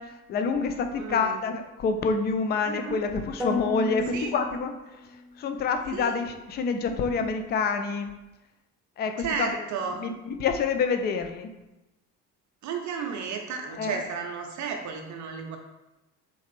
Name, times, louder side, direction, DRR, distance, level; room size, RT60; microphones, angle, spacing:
voice 1, 0.0-4.7 5.4-8.1 9.0-9.5 10.0-11.5 13.8-14.0, left 5 dB, 25° left, 6 dB, 0.3 m, -27 dB
voice 2, 0.9-1.4 2.6-3.0 4.1-4.3 5.9-6.1 9.2-10.1 12.6-15.6, right 6 dB, 40° right, 3 dB, 0.6 m, -33 dB
sound 1, 3.4-5.4, left 2 dB, ahead, 0.7 m, -33 dB
4.1 x 3.1 x 3.3 m, 1.0 s
figure-of-eight pair, 55°, 48 cm